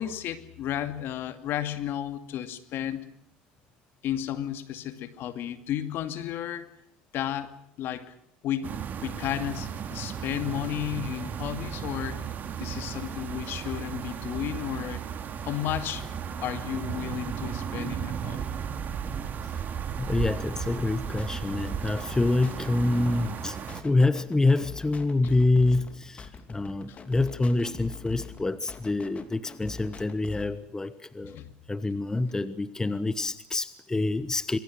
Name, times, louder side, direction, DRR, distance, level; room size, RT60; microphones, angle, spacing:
voice 1, 0.0-3.1 4.0-6.7 7.1-8.1 8.4-12.3 12.6-15.0 15.4-16.1 16.4-18.5 26.9-27.0 31.2-31.5, left 11 dB, 55° left, 10 dB, 2.4 m, -33 dB
sound 1, 8.6-23.8, right 7 dB, 40° right, 2.8 m, -35 dB
voice 2, 20.0-31.4 31.7-34.6, left 2 dB, 15° left, 14 dB, 1.2 m, -26 dB
sound 2, 20.6-30.6, left 5 dB, 30° left, 3.0 m, -44 dB
26.0 x 23.0 x 6.3 m, 0.70 s
supercardioid pair, 90°, 4 cm